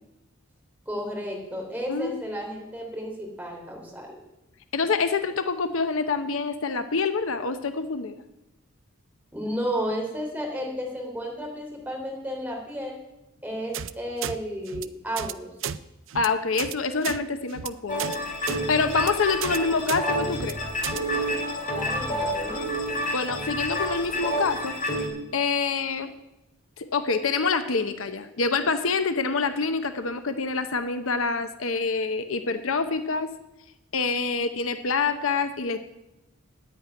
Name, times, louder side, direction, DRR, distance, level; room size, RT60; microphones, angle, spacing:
voice 1, 0.9-4.2 9.3-12.9 13.4-15.5 21.7-22.7, equal, 5° right, -1 dB, 3.3 m, -32 dB
voice 2, 1.9-2.2 4.7-8.2 16.1-18.1 18.7-20.6 23.1-24.7 25.3-26.1 26.8-33.3 33.9-35.8, left 4 dB, 65° left, 9 dB, 0.9 m, -26 dB
sound 1, 13.7-13.9 14.2-14.3 14.7-14.8 15.2-15.3 15.6-15.8 16.1-16.3 16.6-16.7 17.0-17.2 17.5-17.7 18.0-18.2 18.5-18.6 18.9-19.1 19.4-19.6 19.9-20.0 20.3-20.5 20.8-21.0, right 9 dB, 60° right, 0.5 m, -32 dB
sound 2, 17.9-25.1, equal, 40° left, 2.7 m, -29 dB
10.0 x 9.3 x 9.5 m, 0.92 s
head